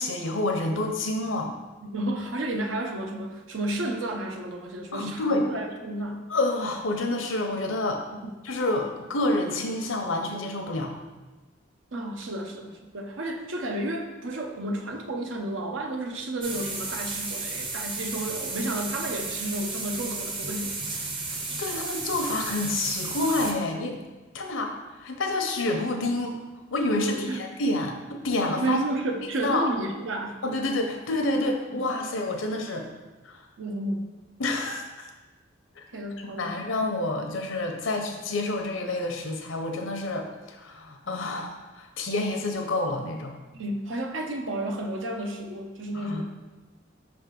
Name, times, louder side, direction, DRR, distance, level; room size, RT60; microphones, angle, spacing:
voice 1, 0.0-1.5 4.9-5.4 6.3-8.0 8.4-10.9 21.6-24.0 24.3-24.7 25.0-26.4 26.7-28.8 29.4-29.7 30.4-32.9 33.2-33.4 34.4-35.1 35.8-35.9 36.3-43.3 45.9-46.2, left 2 dB, 80° left, 3 dB, 0.8 m, -28 dB
voice 2, 1.8-6.3 8.1-8.3 11.9-21.1 27.0-27.4 28.6-30.4 33.6-34.1 35.9-36.7 43.5-46.2, right 1 dB, 75° right, 3 dB, 0.7 m, -32 dB
sound 1, 16.4-23.5, right 3 dB, 25° right, 0.7 m, -33 dB
5.4 x 3.5 x 5.2 m, 1.2 s
head